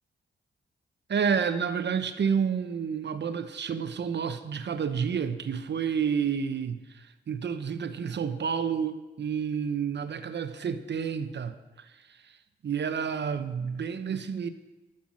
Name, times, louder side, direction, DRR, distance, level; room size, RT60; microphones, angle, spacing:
voice 1, 1.1-11.9 12.2-12.3 12.6-14.5, right 7 dB, 60° right, 10 dB, 1.0 m, -30 dB
12.0 x 6.0 x 7.5 m, 1.1 s
supercardioid pair, 45°, 20 cm